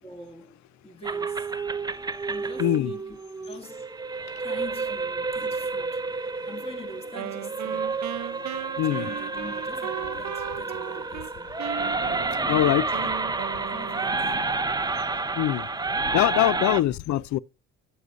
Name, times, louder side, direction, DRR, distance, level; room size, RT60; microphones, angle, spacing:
voice 1, 0.0-1.5 2.3-3.2 3.5-3.9 4.4-6.0 6.5-7.9 8.8-11.5 12.2-13.1 13.4-15.4, left 2 dB, 20° left, 2.3 m, -44 dB
sound 1, 1.0-16.8, right 3 dB, 15° right, 0.5 m, -30 dB
voice 2, 2.6-2.9 8.8-9.1 12.5-12.9 15.4-15.7 16.1-17.4, left 14 dB, 70° left, 0.5 m, -23 dB
Wind instrument woodwind instrument, 7.1-11.3 11.6-14.5, right 13 dB, 65° right, 0.7 m, -37 dB
9.6 x 7.8 x 2.4 m
cardioid pair, 90°, 30 cm